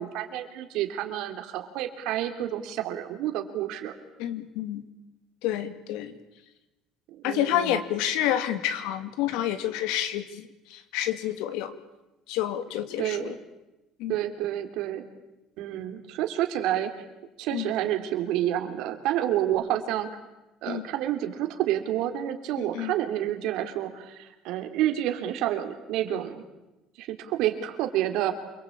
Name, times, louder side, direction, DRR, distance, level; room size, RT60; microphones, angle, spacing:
voice 1, 0.0-3.9 7.2-7.8 13.0-13.4 14.1-15.0 15.6-16.9 17.4-20.1 20.6-26.4 27.0-28.3, right 12 dB, 75° right, 7 dB, 3.3 m, -29 dB
voice 2, 4.2-4.8 5.4-6.1 7.2-11.7 12.3-13.4 14.0-14.2 17.5-17.7 20.7-20.8 22.6-22.9, left 11 dB, 85° left, 10 dB, 2.5 m, -29 dB
28.5 x 22.0 x 8.7 m, 1.0 s
cardioid pair, 150°, 0 cm